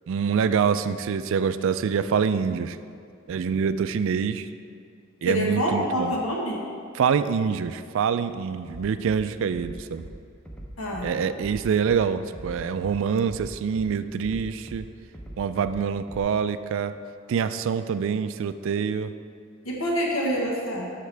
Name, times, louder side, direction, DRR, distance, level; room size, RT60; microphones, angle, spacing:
voice 1, 0.1-2.8 3.3-4.5 5.2-6.1 6.9-10.1 11.0-14.9 15.4-16.9 17.3-19.1, right 6 dB, 65° right, 11 dB, 0.3 m, -25 dB
voice 2, 5.2-6.6 10.8-11.1 19.6-20.9, equal, 75° left, -2 dB, 1.3 m, -26 dB
Bass drum, 8.7-9.2 9.5-10.1 10.5-11.1 11.4-12.0 12.3-12.9 13.3-13.9 14.2-14.8 15.1-15.8 16.1-16.2, right 1 dB, 5° left, 0.7 m, -41 dB
12.5 x 5.8 x 3.3 m, 2.4 s
head